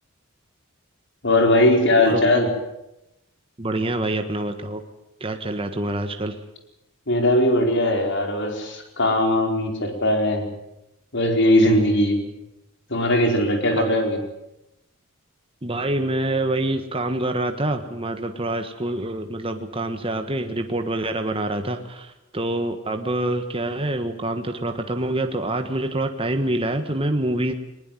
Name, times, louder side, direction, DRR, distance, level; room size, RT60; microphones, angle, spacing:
voice 1, 1.2-2.5 7.1-10.5 11.1-12.3 12.9-14.2, left 1 dB, 55° left, 4 dB, 4.6 m, -19 dB
voice 2, 3.6-4.8 5.2-6.4 13.8-13.9 15.6-27.5, right 1 dB, 25° right, 6 dB, 1.5 m, -26 dB
20.5 x 20.5 x 9.2 m, 0.89 s
head